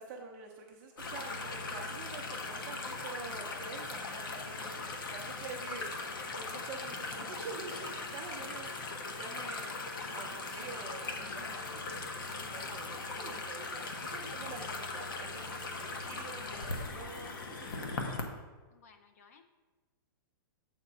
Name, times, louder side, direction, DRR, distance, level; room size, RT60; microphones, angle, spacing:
voice 1, 0.0-4.8 5.1-9.9 10.1-17.8, right 4 dB, 20° right, 0 dB, 0.6 m, -47 dB
sound 1, 1.0-18.2, left 3 dB, 60° left, 1.1 m, -39 dB
voice 2, 18.7-19.4, left 5 dB, 40° left, 8 dB, 0.5 m, -61 dB
7.8 x 4.3 x 6.1 m, 1.3 s
hypercardioid pair, 175°, 12 cm